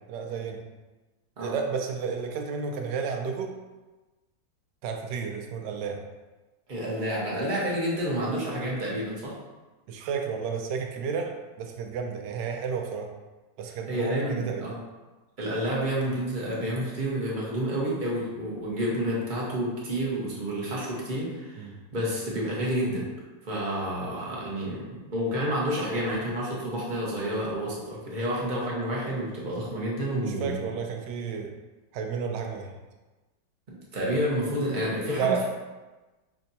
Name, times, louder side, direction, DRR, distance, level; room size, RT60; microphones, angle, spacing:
voice 1, 0.1-0.6 1.4-3.5 4.8-6.0 9.9-13.1 13.6-14.7 21.6-21.8 30.2-31.6 31.9-32.7 35.2-35.4, right 6 dB, 70° right, 3 dB, 1.1 m, -31 dB
voice 2, 6.7-9.3 13.9-14.8 15.4-23.1 23.4-30.7 33.7-35.4, equal, 40° right, -5 dB, 0.7 m, -29 dB
5.8 x 3.3 x 2.7 m, 1.2 s
omnidirectional pair, 2.2 m